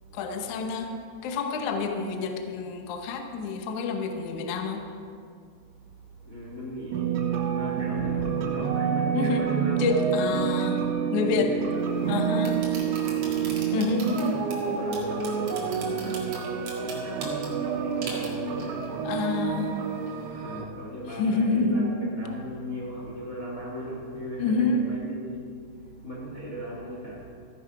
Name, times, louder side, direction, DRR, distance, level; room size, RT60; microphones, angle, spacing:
voice 1, 0.1-4.9 9.1-9.5 9.8-10.9 11.1-11.5 12.1-12.6 13.7-14.4 19.0-19.8 21.2-21.9 24.4-24.8, left 4 dB, 75° left, 5 dB, 1.8 m, -28 dB
voice 2, 5.7-19.1 20.3-27.3, equal, 50° left, -4 dB, 1.0 m, -38 dB
sound 1, 6.9-20.6, right 7 dB, 80° right, 3.0 m, -28 dB
sound 2, 11.7-20.3, right 2 dB, 50° right, 2.8 m, -42 dB
15.0 x 10.0 x 4.9 m, 2.3 s
omnidirectional pair, 4.7 m